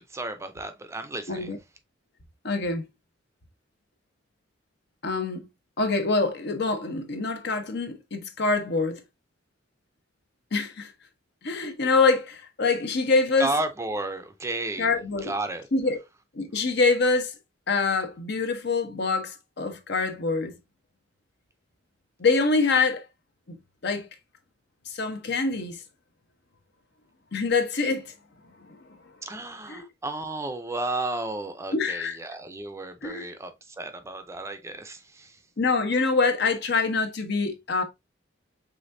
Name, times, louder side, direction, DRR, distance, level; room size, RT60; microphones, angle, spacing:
voice 1, 0.0-1.6 13.4-14.9 15.2-15.7 29.2-35.4, right 2 dB, 15° right, 0.5 m, -33 dB
voice 2, 2.4-2.8 5.0-5.5 5.8-9.0 10.5-10.9 11.4-13.5 14.8-15.3 15.7-16.0 16.3-17.3 17.7-20.6 22.2-23.1 23.5-23.6 23.8-24.1 24.9-25.8 27.3-28.1 28.7-28.8 29.7-29.8 31.7-32.2 33.0-33.3 35.6-37.8, left 4 dB, 65° left, 1.0 m, -25 dB
5.1 x 3.4 x 2.6 m
head